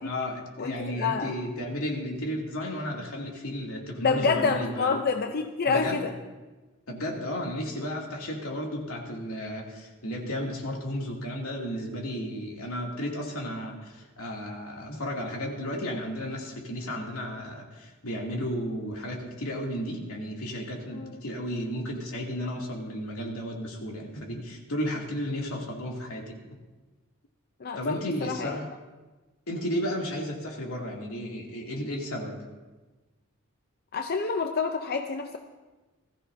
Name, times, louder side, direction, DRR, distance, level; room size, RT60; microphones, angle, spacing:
voice 1, 0.0-5.0 5.7-6.1 6.9-26.4 27.8-28.7 29.5-32.4, equal, 85° left, -1 dB, 2.6 m, -33 dB
voice 2, 0.6-1.4 4.0-6.1 20.9-21.2 27.6-28.5 33.9-35.4, left 5 dB, 45° left, 5 dB, 0.6 m, -28 dB
20.0 x 14.5 x 2.7 m, 1.2 s
head